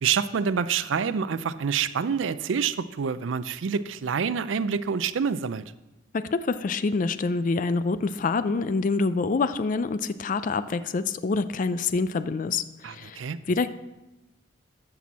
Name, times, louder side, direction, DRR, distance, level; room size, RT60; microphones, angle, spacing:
voice 1, 0.0-5.6 12.8-13.4, right 6 dB, 90° right, 15 dB, 0.4 m, -27 dB
voice 2, 6.1-13.2 13.5-13.7, left 4 dB, 45° left, 13 dB, 0.4 m, -26 dB
13.5 x 6.1 x 4.1 m, 1.0 s
head